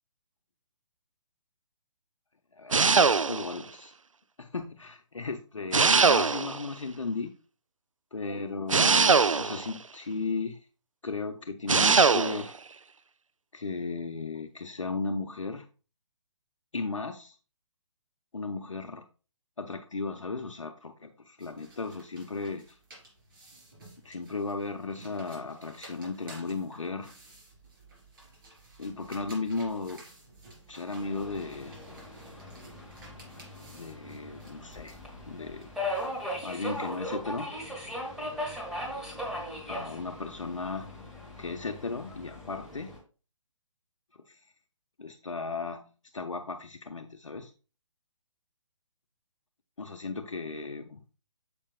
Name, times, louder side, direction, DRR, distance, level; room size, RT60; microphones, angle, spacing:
voice 1, 2.5-3.9 4.4-7.3 8.1-10.6 11.0-12.5 13.5-15.7 16.7-17.4 18.3-19.0 19.6-22.8 24.0-27.1 28.8-30.0 30.7-31.8 33.7-35.0 35.3-35.7 36.4-37.5 39.7-40.9 41.4-42.9 44.3-44.5 45.0-45.8 46.1-47.5 49.8-51.0, left 3 dB, 75° left, 5 dB, 0.7 m, -35 dB
sound 1, 2.7-3.6 5.7-6.7 8.7-9.7 11.7-12.5, right 5 dB, 80° right, 0.4 m, -22 dB
sound 2, 21.4-37.0, right 2 dB, 45° right, 3.3 m, -54 dB
Subway metro underground, 31.0-43.0, left 1 dB, ahead, 1.4 m, -39 dB
7.2 x 6.9 x 2.2 m, 0.35 s
figure-of-eight pair, 135°, 16 cm